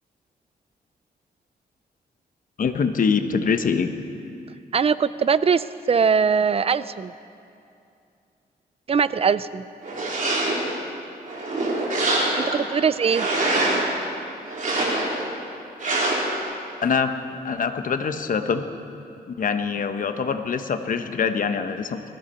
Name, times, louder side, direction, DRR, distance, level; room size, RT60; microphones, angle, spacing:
voice 1, 2.6-3.9 16.8-17.1 17.4-18.7 19.3-22.0, left 6 dB, 55° left, 8 dB, 1.0 m, -24 dB
voice 2, 4.7-7.1 8.9-9.6 12.4-13.3, right 6 dB, 35° right, 16 dB, 0.4 m, -21 dB
sound 1, 9.8-10.7 11.2-12.6 13.0-13.9 14.5-15.3 15.8-16.4, right 2 dB, 55° right, 3.5 m, -24 dB
21.0 x 15.0 x 4.3 m, 2.6 s
cardioid pair, 110°, 16 cm